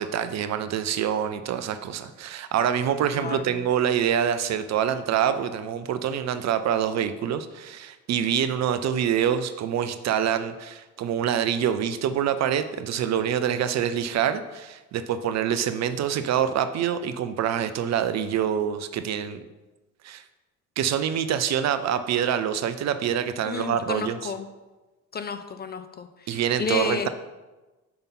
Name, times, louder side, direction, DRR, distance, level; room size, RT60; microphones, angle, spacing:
voice 1, 0.0-19.5 20.0-20.2 20.8-24.3 26.3-27.1, right 9 dB, 40° right, 11 dB, 0.5 m, -26 dB
voice 2, 3.1-3.6 23.4-24.5 25.1-27.1, left 4 dB, 25° left, 9 dB, 0.5 m, -31 dB
5.6 x 5.1 x 4.2 m, 1.1 s
hypercardioid pair, 60°, 42 cm